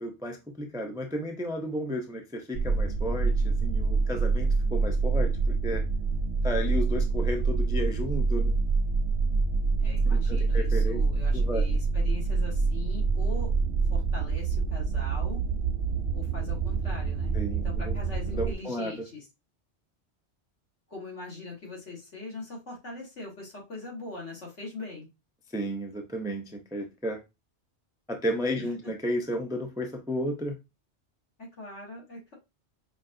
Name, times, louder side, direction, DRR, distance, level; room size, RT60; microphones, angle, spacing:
voice 1, 0.0-5.8 6.4-8.6 10.0-11.0 11.3-11.7 17.3-18.0 18.3-19.1 25.5-27.2 28.1-30.6, equal, 5° right, 0.3 m, -33 dB
sound 1, 2.5-18.5, right 4 dB, 65° right, 0.7 m, -26 dB
voice 2, 9.8-13.5 13.9-15.4 16.1-19.2 20.9-25.1 28.6-28.7 31.4-32.3, left 2 dB, 85° left, 2.1 m, -41 dB
5.1 x 2.5 x 2.6 m
omnidirectional pair, 1.2 m